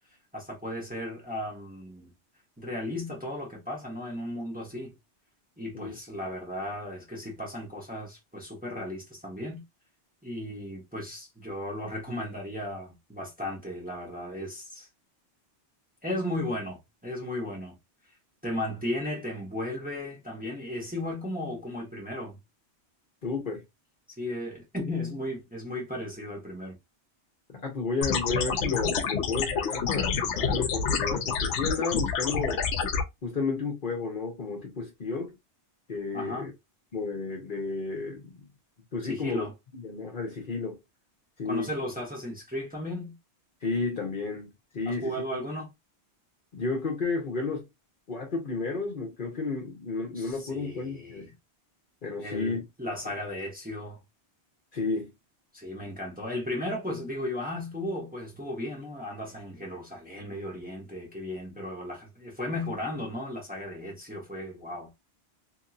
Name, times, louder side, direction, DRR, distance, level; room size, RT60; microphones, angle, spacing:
voice 1, 0.3-2.1 2.6-4.9 5.6-9.6 10.2-14.9 16.0-17.7 18.4-22.4 24.2-26.8 36.1-36.5 39.0-39.5 41.4-43.1 44.8-45.7 50.1-51.3 52.2-54.0 55.5-64.9, left 1 dB, 10° right, 1.0 m, -35 dB
voice 2, 23.2-23.6 27.5-32.6 33.2-35.3 35.9-36.5 36.9-38.5 38.9-39.5 39.7-40.8 41.4-41.7 43.6-45.1 46.5-47.6 48.1-51.3 52.0-52.6 53.0-53.1 54.7-55.1, left 4 dB, 50° left, 1.0 m, -32 dB
sound 1, 28.0-33.0, left 6 dB, 80° left, 0.9 m, -28 dB
2.9 x 2.7 x 2.4 m
omnidirectional pair, 1.2 m